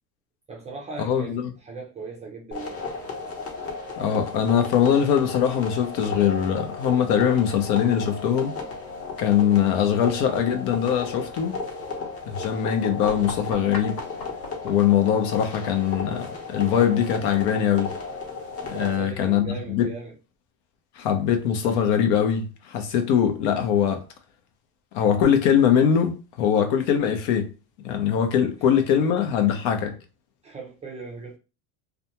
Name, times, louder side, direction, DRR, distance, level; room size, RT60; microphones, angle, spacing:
voice 1, 0.5-2.9 18.7-20.1 30.4-31.4, right 4 dB, 15° right, 0.4 m, -38 dB
voice 2, 1.0-1.5 4.0-8.5 9.2-11.6 12.3-14.0 14.6-17.9 18.7-19.9 21.0-24.0 24.9-27.5 27.8-30.0, left 8 dB, 60° left, 0.7 m, -22 dB
sound 1, 2.5-19.0, left 4 dB, 30° left, 0.9 m, -34 dB
sound 2, 13.0-18.6, left 2 dB, 85° left, 1.3 m, -42 dB
2.4 x 2.2 x 2.8 m
supercardioid pair, 130°, 44 cm